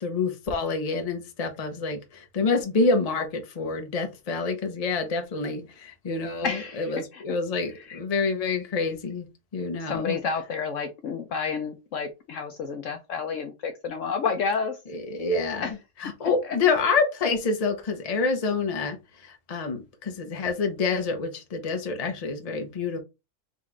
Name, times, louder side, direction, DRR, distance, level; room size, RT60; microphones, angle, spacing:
voice 1, 0.0-10.2 14.9-15.7 16.0-23.0, left 4 dB, 30° left, 0.8 m, -27 dB
voice 2, 6.4-7.2 7.9-8.0 9.9-14.8 15.6-15.7, left 5 dB, 65° left, 0.9 m, -30 dB
4.0 x 3.0 x 3.7 m
omnidirectional pair, 1.6 m